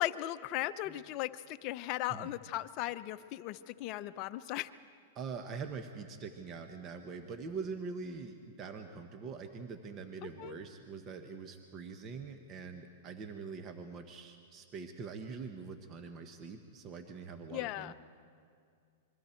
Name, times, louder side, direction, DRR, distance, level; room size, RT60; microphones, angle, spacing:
voice 1, 0.0-4.7 10.4-10.6 17.5-17.9, left 15 dB, 40° left, 11 dB, 0.7 m, -37 dB
voice 2, 5.1-17.9, right 5 dB, 30° right, 6 dB, 1.2 m, -44 dB
26.5 x 22.5 x 4.5 m, 2.2 s
hypercardioid pair, 135°, 0 cm